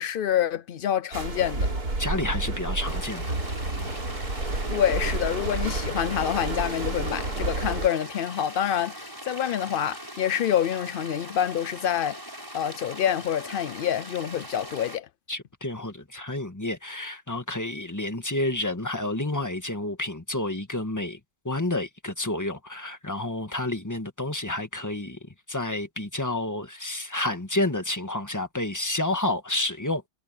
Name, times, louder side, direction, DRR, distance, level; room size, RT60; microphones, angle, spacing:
voice 1, 0.0-1.7 4.7-12.2 12.5-15.1, left 10 dB, 80° left, 0.4 m, -27 dB
sound 1, 1.1-7.9, right 2 dB, 80° right, 4.7 m, -30 dB
voice 2, 2.0-3.3 3.8-4.0 15.3-21.2 21.4-25.2 25.5-30.0, left 2 dB, 10° left, 1.7 m, -30 dB
sound 2, 2.8-15.0, equal, 15° right, 7.5 m, -41 dB
omnidirectional pair, 1.6 m